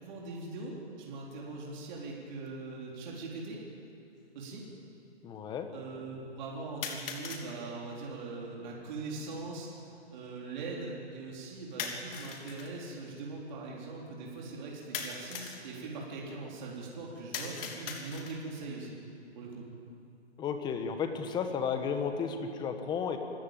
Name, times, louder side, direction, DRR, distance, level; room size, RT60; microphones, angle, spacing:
voice 1, 0.0-3.6 4.3-4.6 5.7-19.0 19.4-19.6, right 3 dB, 40° right, -3 dB, 3.9 m, -41 dB
sound 1, 2.5-2.6 3.5-3.6 6.8-7.5 11.8-12.7 14.9-15.6 17.3-18.5, left 5 dB, 55° left, 3.3 m, -39 dB
voice 2, 5.2-5.7 20.4-23.2, left 6 dB, 15° left, 7 dB, 1.3 m, -33 dB
26.5 x 15.5 x 9.1 m, 2.6 s
hypercardioid pair, 145°, 33 cm